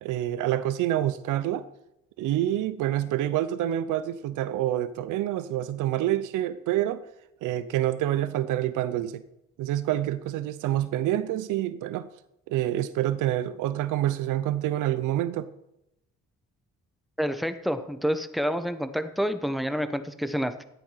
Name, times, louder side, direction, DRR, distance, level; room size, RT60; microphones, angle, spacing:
voice 1, 0.0-1.6 2.2-7.0 7.4-9.2 9.6-12.1 12.5-15.5, right 13 dB, 90° right, 13 dB, 0.7 m, -27 dB
voice 2, 17.2-20.6, equal, ahead, 10 dB, 1.0 m, -28 dB
13.0 x 8.8 x 5.7 m, 0.84 s
cardioid pair, 90°, 30 cm